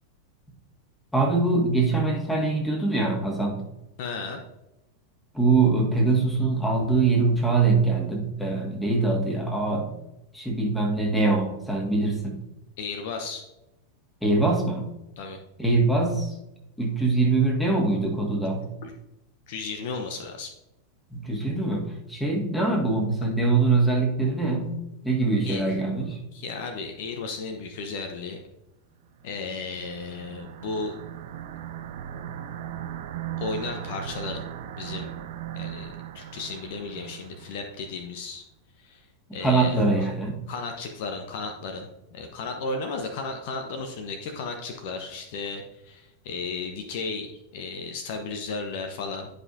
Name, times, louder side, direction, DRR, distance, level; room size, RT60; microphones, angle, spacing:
voice 1, 1.1-3.6 5.3-9.9 10.3-12.4 14.2-14.9 15.6-16.4 16.8-18.7 21.1-26.2 39.4-40.4, right 3 dB, 5° left, 0 dB, 1.8 m, -23 dB
voice 2, 4.0-4.4 12.8-13.5 15.2-15.4 18.8-18.9 19.5-20.5 25.4-25.6 26.3-28.4 29.2-31.0 33.4-34.5 34.8-35.1 35.5-38.4 38.8-39.1 39.3-40.1 40.5-49.3, left 4 dB, 50° left, 5 dB, 0.9 m, -34 dB
sound 1, 29.3-37.9, right 10 dB, 55° right, 0.5 m, -38 dB
11.0 x 5.2 x 2.7 m, 0.91 s
figure-of-eight pair, 90°, 0 cm